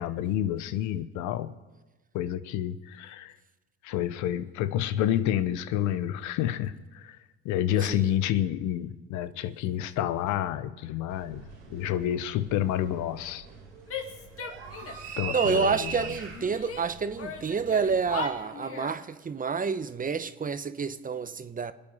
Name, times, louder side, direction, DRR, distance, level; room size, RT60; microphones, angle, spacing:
voice 1, 0.0-1.5 2.1-3.3 3.8-7.2 7.4-11.4 11.7-13.5 15.2-15.9, left 11 dB, 75° left, 0.9 m, -29 dB
sound 1, 11.1-18.3, right 5 dB, 90° right, 4.5 m, -41 dB
Female speech woman speaking / Yell, 13.9-15.1 15.4-16.8 17.2-19.0, left 5 dB, 50° left, 2.5 m, -39 dB
voice 2, 14.9-21.7, right 5 dB, 30° right, 0.9 m, -29 dB
25.5 x 9.0 x 5.4 m
supercardioid pair, 80°, 30 cm